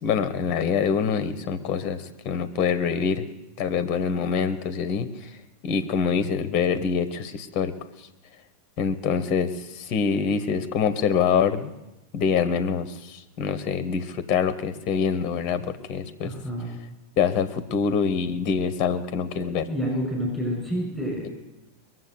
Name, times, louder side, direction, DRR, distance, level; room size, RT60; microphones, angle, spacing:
voice 1, 0.0-3.2 3.6-5.3 5.6-7.7 8.8-11.7 12.1-16.3 17.2-19.7 21.2-21.3, left 6 dB, 40° left, 12 dB, 1.1 m, -25 dB
voice 2, 16.2-16.7 19.3-21.3, equal, ahead, -2 dB, 6.5 m, -29 dB
21.5 x 7.6 x 8.0 m, 0.98 s
figure-of-eight pair, 90°, 0 cm